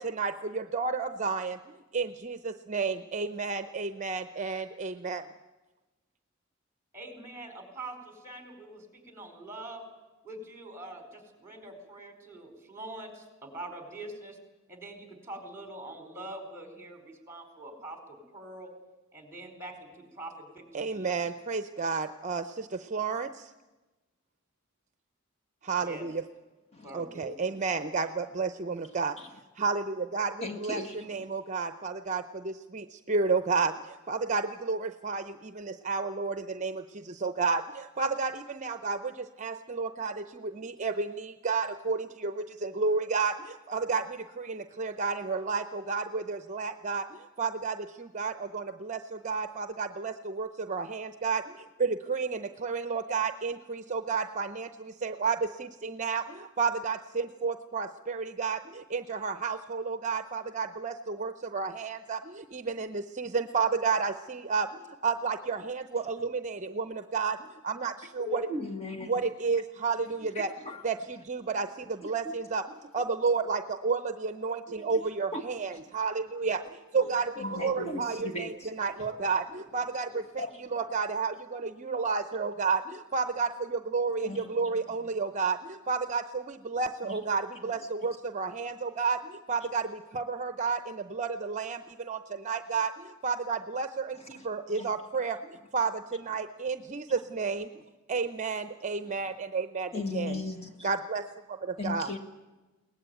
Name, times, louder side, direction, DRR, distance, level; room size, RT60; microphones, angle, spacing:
voice 1, 0.0-1.6 1.9-5.3 20.7-23.5 25.6-26.2 26.9-29.2 29.6-68.5 69.1-70.5 70.8-77.3 77.6-97.7 98.1-100.4 100.8-102.1, right 4 dB, 35° right, 9 dB, 0.7 m, -31 dB
voice 2, 6.9-9.8 10.2-14.4 14.7-18.7 19.1-21.1 25.8-26.1 26.8-27.5, right 1 dB, 15° right, 5 dB, 4.5 m, -44 dB
voice 3, 30.4-31.2 68.2-69.1 70.6-70.8 72.0-72.3 74.8-75.0 75.3-75.4 76.9-77.1 77.4-78.7 79.1-79.2 80.1-80.9 84.2-85.0 87.0-87.2 87.6-87.7 94.1-94.5 94.7-94.9 99.0-99.1 99.9-100.9 101.8-102.2, left 2 dB, 30° left, 5 dB, 1.7 m, -38 dB
22.0 x 18.5 x 9.1 m, 1.1 s
head